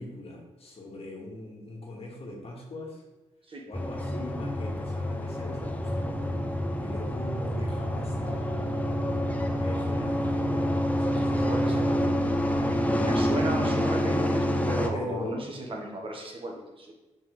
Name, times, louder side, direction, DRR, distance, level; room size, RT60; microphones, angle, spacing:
voice 1, 0.0-3.0 3.7-6.4 6.8-8.7 9.6-13.1 14.9-15.4, left 1 dB, 55° left, -1 dB, 1.8 m, -40 dB
sound 1, 3.7-14.9, equal, 10° left, 0.7 m, -27 dB
voice 2, 11.1-11.9 13.0-16.9, right 1 dB, 45° right, 0 dB, 1.5 m, -35 dB
7.9 x 3.9 x 3.4 m, 1.1 s
cardioid pair, 70°, 12 cm